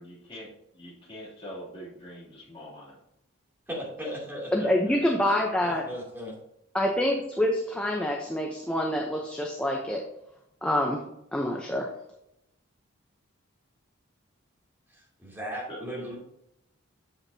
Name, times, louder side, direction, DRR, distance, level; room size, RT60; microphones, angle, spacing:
voice 1, 0.0-3.0 15.7-16.1, equal, 25° left, -5 dB, 2.9 m, -44 dB
voice 2, 3.7-4.7 5.6-6.3 14.9-16.1, equal, 10° right, -5 dB, 2.8 m, -37 dB
voice 3, 4.5-5.8 6.7-10.0 10.6-11.0 11.3-11.9, left 1 dB, 5° left, -1 dB, 0.8 m, -26 dB
8.1 x 8.1 x 2.8 m, 0.80 s
head